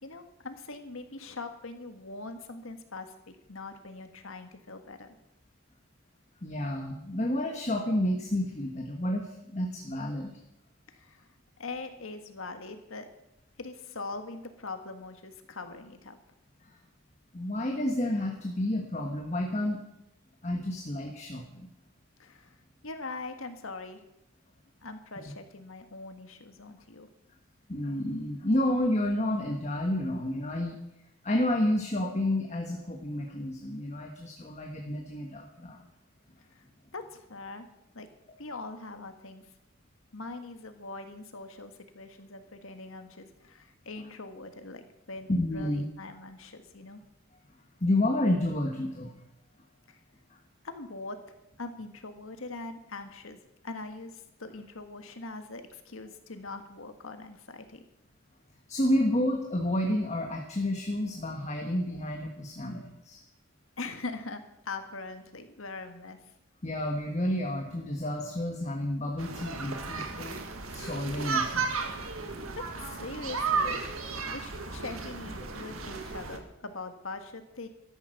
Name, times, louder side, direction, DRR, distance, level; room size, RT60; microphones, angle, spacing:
voice 1, 0.0-5.2 10.9-11.3 11.6-13.1 13.6-16.2 22.2-24.0 24.8-27.1 36.5-36.6 36.9-37.7 37.9-38.1 38.4-39.4 40.1-44.8 45.1-47.0 49.9-50.0 50.6-51.2 51.6-53.4 53.6-57.8 63.8-66.2 72.2-73.8 74.3-77.7, left 3 dB, 75° left, 7 dB, 1.6 m, -42 dB
voice 2, 6.4-10.3 16.6-16.8 17.3-19.8 20.4-21.7 27.7-30.8 31.2-35.8 45.3-45.9 47.8-49.2 58.7-63.2 66.6-70.4 70.7-71.7 73.6-73.7, left 1 dB, 35° left, 2 dB, 1.4 m, -30 dB
sound 1, 69.2-76.4, right 4 dB, 80° right, 1.8 m, -34 dB
13.5 x 10.5 x 6.6 m, 0.83 s
head